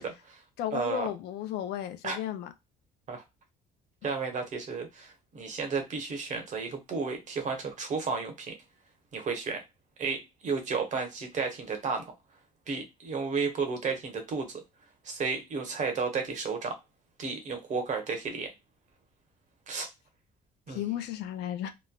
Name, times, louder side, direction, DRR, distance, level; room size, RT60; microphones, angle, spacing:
voice 1, 0.0-0.4 0.7-1.1 2.0-2.2 3.1-3.2 4.0-8.6 9.1-9.6 10.0-12.1 12.7-14.6 15.0-16.8 17.2-18.5 19.7-19.9 20.7-21.0, right 5 dB, 45° right, 1.0 m, -33 dB
voice 2, 0.6-2.5 20.7-21.7, left 11 dB, 80° left, 0.5 m, -34 dB
3.0 x 2.2 x 2.3 m
cardioid pair, 110°, 17 cm